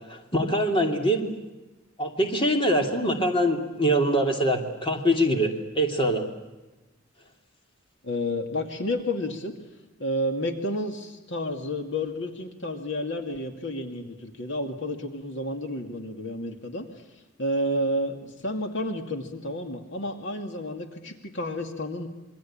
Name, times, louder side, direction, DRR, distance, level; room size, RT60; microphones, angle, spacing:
voice 1, 0.1-1.3 2.0-5.5 5.7-6.3, equal, 25° left, 3 dB, 2.9 m, -23 dB
voice 2, 8.0-9.5 10.0-16.9 17.4-22.1, left 1 dB, 60° left, 4 dB, 2.4 m, -30 dB
27.5 x 23.0 x 8.8 m, 1.1 s
head